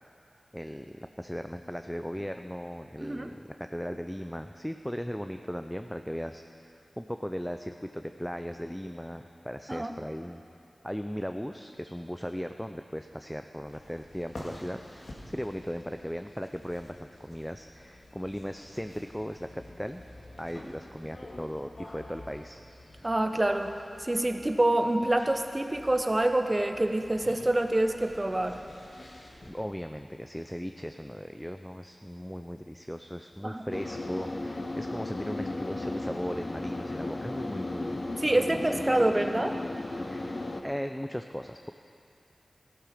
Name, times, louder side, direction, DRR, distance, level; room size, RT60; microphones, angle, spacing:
voice 1, 0.5-6.4 6.7-10.4 10.8-20.0 20.4-22.6 29.5-38.0 38.4-38.6 38.9-39.0 40.1-40.4 40.6-41.7, equal, 5° left, 7 dB, 0.4 m, -37 dB
sound 1, 13.6-29.5, left 1 dB, 70° left, 2.1 m, -49 dB
voice 2, 23.0-23.7 24.0-28.6 33.4-33.6 38.2-39.6, right 1 dB, 30° right, 6 dB, 0.8 m, -26 dB
sound 2, 33.7-40.6, left 2 dB, 50° left, 0.8 m, -35 dB
14.5 x 11.5 x 5.0 m, 2.6 s
wide cardioid pair, 65°, 0 cm